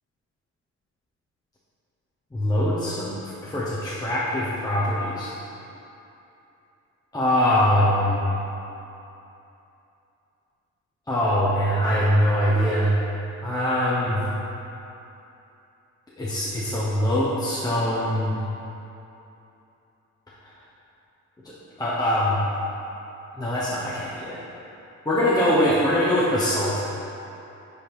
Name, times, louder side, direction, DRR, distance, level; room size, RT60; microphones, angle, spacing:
voice 1, 2.3-5.3 7.1-8.3 11.1-13.0 13.4-14.2 16.2-18.4 21.4-22.4 23.4-24.4 25.1-26.9, equal, 15° left, -8 dB, 0.9 m, -23 dB
5.0 x 4.4 x 5.6 m, 2.9 s
cardioid pair, 90°, 30 cm